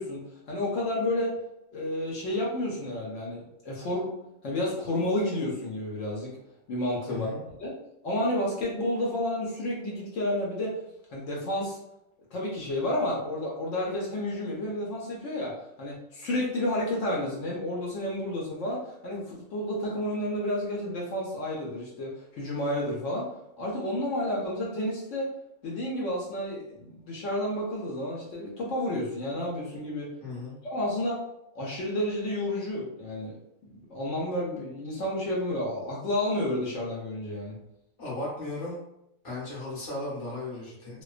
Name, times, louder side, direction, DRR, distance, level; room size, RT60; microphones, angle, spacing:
voice 1, 0.0-1.3 1.7-4.1 4.4-6.4 6.7-7.3 7.6-7.7 8.0-10.8 11.1-11.8 12.3-23.3 23.6-25.3 25.6-30.1 30.6-31.2 31.5-33.4 33.6-37.6, left 1 dB, 70° left, -4 dB, 1.0 m, -31 dB
voice 2, 7.1-7.4 30.2-30.6 38.0-38.8 39.2-41.0, left 2 dB, 25° left, -6 dB, 0.8 m, -36 dB
2.4 x 2.2 x 2.4 m, 0.81 s
omnidirectional pair, 1.4 m